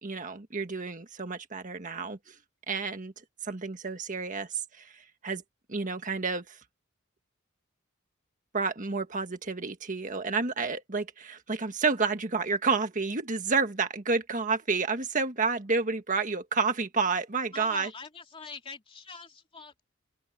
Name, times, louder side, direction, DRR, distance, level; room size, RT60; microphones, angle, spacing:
voice 1, 0.0-2.3 2.7-3.1 3.4-5.4 5.7-6.6 8.5-17.9, right 4 dB, 40° right, 1.6 m, -30 dB
voice 2, 17.5-19.8, left 5 dB, 30° left, 2.6 m, -44 dB
head